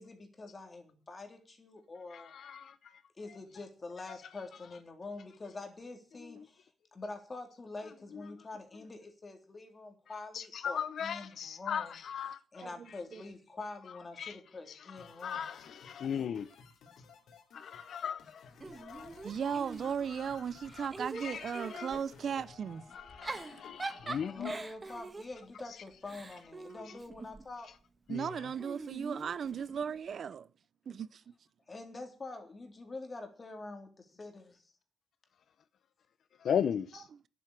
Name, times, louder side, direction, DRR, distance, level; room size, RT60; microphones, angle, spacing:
voice 1, 0.0-2.3 3.2-12.0 12.5-15.6 24.2-27.7 31.7-33.9 34.2-34.4, left 3 dB, 30° left, 3.4 m, -46 dB
voice 2, 2.1-2.7 10.3-12.4 14.2-14.4 15.1-16.5 17.5-19.2 20.8-20.9 21.1-21.9 22.9-24.5 28.1-28.3 36.4-37.1, left 8 dB, 65° left, 0.8 m, -37 dB
sound 1, 15.0-24.4, left 5 dB, 80° left, 3.2 m, -56 dB
Giggle / Chuckle chortle, 18.6-20.2 20.6-22.1 23.0-27.5 28.6-30.0, right 3 dB, 25° right, 1.4 m, -43 dB
voice 3, 19.2-22.8 28.1-30.5 30.9-31.2, right 7 dB, 55° right, 0.5 m, -36 dB
11.0 x 8.6 x 9.5 m
cardioid pair, 115°, 0 cm